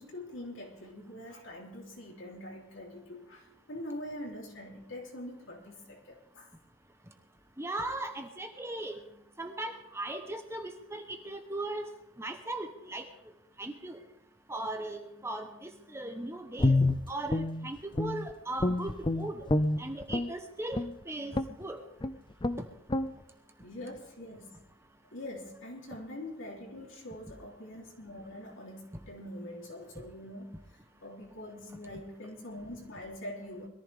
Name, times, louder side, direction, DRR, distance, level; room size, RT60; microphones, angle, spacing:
voice 1, 0.0-6.5 23.6-24.6 25.1-30.5 31.0-33.7, left 1 dB, 60° left, 0 dB, 3.6 m, -44 dB
voice 2, 7.6-9.0 9.4-11.9 12.2-13.0 13.6-14.0 14.5-16.8 17.1-19.4 19.8-21.8, right 2 dB, 10° right, 5 dB, 1.0 m, -38 dB
Guitar, 16.6-18.3 18.6-20.3 20.7-21.0 21.3-21.6 22.0-22.1 22.4-22.6 22.9-23.1, left 2 dB, 20° left, 0.5 m, -28 dB
21.5 x 14.5 x 3.6 m, 0.82 s
head